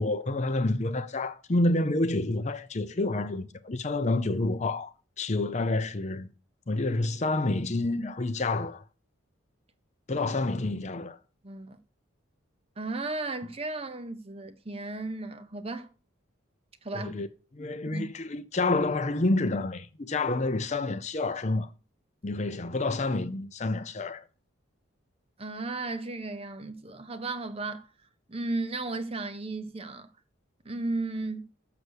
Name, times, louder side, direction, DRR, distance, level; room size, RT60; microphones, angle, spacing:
voice 1, 0.0-6.3 6.7-8.8 10.1-11.2 16.9-17.3 17.6-21.7 22.2-24.2, left 2 dB, 35° left, 0.6 m, -28 dB
voice 2, 11.4-11.8 12.8-15.9 16.8-17.2 17.9-18.1 25.4-27.9 28.3-30.1 30.6-31.5, right 2 dB, 30° right, 0.7 m, -35 dB
6.9 x 6.6 x 6.3 m
head